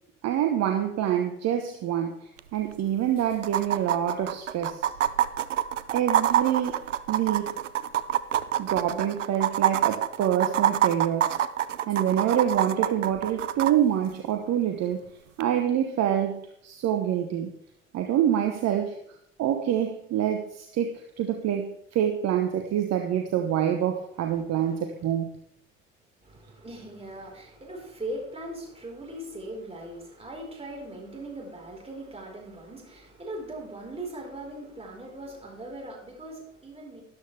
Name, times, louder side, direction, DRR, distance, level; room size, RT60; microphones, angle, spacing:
voice 1, 0.2-4.9 5.9-6.8 7.1-7.5 8.6-11.3 11.9-15.0 15.4-17.5 17.9-19.0 19.4-25.3, right 10 dB, 45° right, 5 dB, 1.1 m, -26 dB
sound 1, 2.4-2.5 2.7-2.8 3.4-13.7 15.4-15.5, right 11 dB, 80° right, 0.6 m, -26 dB
voice 2, 26.2-37.0, right 1 dB, 15° right, -1 dB, 4.6 m, -40 dB
13.0 x 11.5 x 3.4 m, 0.70 s
figure-of-eight pair, 55°, 37 cm